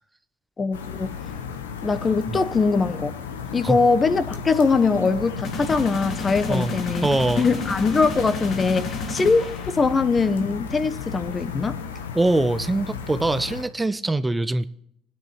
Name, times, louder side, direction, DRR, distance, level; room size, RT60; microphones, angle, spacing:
voice 1, 0.6-1.1 1.8-3.2 3.5-7.1 7.4-9.5 9.8-11.8, left 4 dB, 30° left, 0.9 m, -22 dB
sound 1, 0.7-13.6, left 6 dB, 85° left, 0.9 m, -34 dB
sound 2, 5.4-10.2, left 3 dB, 55° left, 2.0 m, -32 dB
voice 2, 7.0-7.5 12.1-14.7, right 2 dB, 15° right, 0.5 m, -23 dB
20.0 x 9.7 x 3.0 m
hypercardioid pair, 65°, 0 cm